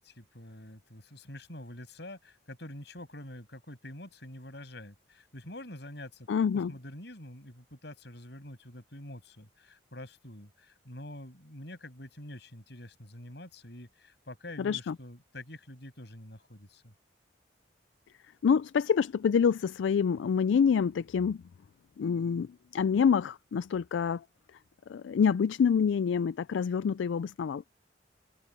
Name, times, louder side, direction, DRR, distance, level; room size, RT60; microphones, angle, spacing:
voice 1, 0.0-6.3 6.5-16.9, left 1 dB, 60° left, 7.0 m, -46 dB
voice 2, 6.3-6.7 14.6-14.9 18.4-21.4 22.0-24.2 24.9-27.6, left 6 dB, 75° left, 0.3 m, -27 dB
head